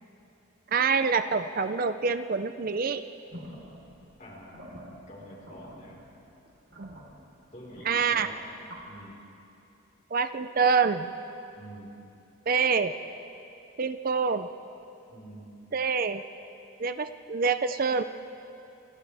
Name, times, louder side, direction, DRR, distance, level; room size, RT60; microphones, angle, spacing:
voice 1, 0.7-3.0 6.8-6.9 7.8-8.3 10.1-11.1 12.5-12.9 13.8-14.5 15.7-16.2 16.8-18.0, right 5 dB, 40° right, 10 dB, 0.5 m, -26 dB
sound 1, 3.3-8.8, equal, 60° right, 3.9 m, -48 dB
voice 2, 4.2-6.0 7.5-8.5 8.9-9.2 11.5-12.0 15.1-15.5, equal, 35° left, -3 dB, 4.4 m, -47 dB
29.0 x 26.5 x 3.5 m, 2.8 s
head